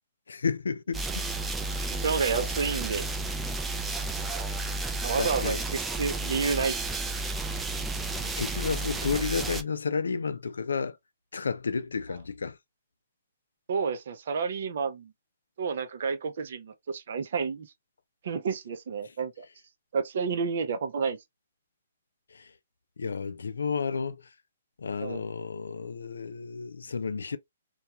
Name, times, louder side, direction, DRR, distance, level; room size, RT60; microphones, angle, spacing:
voice 1, 0.3-1.3 1.8-2.0 5.2-5.6 7.7-7.8 8.1-11.0 11.3-12.6 22.3-22.5 23.0-24.3 24.8-27.4, left 5 dB, 90° left, 0.3 m, -32 dB
sound 1, 0.9-9.6, right 2 dB, 10° right, 0.3 m, -32 dB
voice 2, 1.9-3.1 5.0-6.8 13.7-15.1 15.6-17.7 18.2-19.3 19.9-21.2 25.0-25.2, right 5 dB, 60° right, 0.5 m, -30 dB
2.8 x 2.3 x 2.2 m
hypercardioid pair, 145°, 0 cm